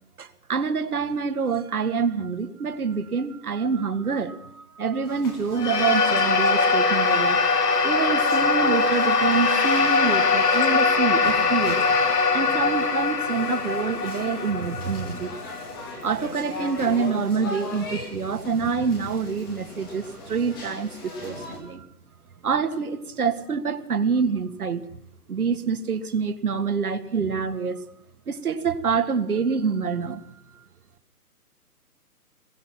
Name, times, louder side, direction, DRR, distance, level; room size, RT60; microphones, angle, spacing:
voice 1, 0.2-7.4 7.8-15.4 16.0-21.9 22.4-24.9 25.3-27.8 28.3-30.2 30.5-30.6, right 5 dB, 70° right, 8 dB, 2.0 m, -26 dB
sound 1, 5.0-21.6, left 1 dB, 15° left, 2.4 m, -40 dB
sound 2, 5.5-16.1, left 4 dB, 85° left, 3.2 m, -22 dB
21.5 x 21.5 x 5.9 m, 0.73 s
hypercardioid pair, 180°, 46 cm